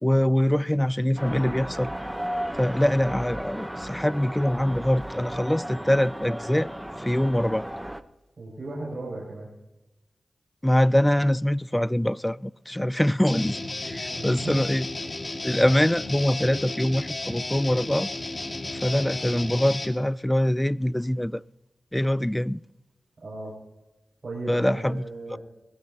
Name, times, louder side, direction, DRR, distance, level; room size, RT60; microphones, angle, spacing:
voice 1, 0.0-1.9 2.6-6.7 7.0-7.7 10.6-13.6 13.8-14.9 15.4-18.1 18.8-21.4 21.9-22.6 24.5-25.0 25.3-25.4, left 1 dB, 10° left, 0.4 m, -23 dB
sound 1, 1.2-8.0, equal, 5° right, 0.8 m, -35 dB
voice 2, 8.4-9.5 14.2-14.6 23.2-23.5 24.2-25.4, right 2 dB, 60° right, 6.4 m, -35 dB
Guitar, 13.2-20.0, left 2 dB, 45° left, 1.9 m, -33 dB
20.0 x 15.5 x 2.8 m
cardioid pair, 45°, 0 cm